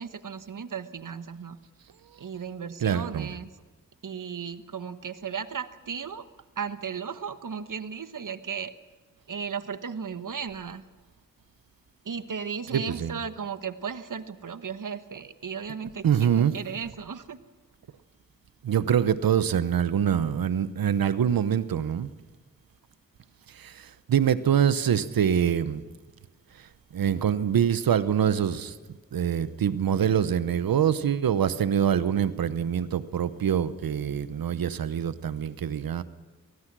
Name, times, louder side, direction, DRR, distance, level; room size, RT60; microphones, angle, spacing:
voice 1, 0.0-1.6 2.2-3.5 4.0-6.2 6.6-8.7 9.3-10.8 12.0-17.4, right 6 dB, 65° right, 11 dB, 1.3 m, -35 dB
voice 2, 2.8-3.3 12.7-13.2 16.0-16.6 18.6-22.1 23.5-25.8 26.5-28.8 29.1-36.0, right 8 dB, 90° right, 14 dB, 0.9 m, -25 dB
24.0 x 19.0 x 6.2 m, 1.3 s
cardioid pair, 45°, 34 cm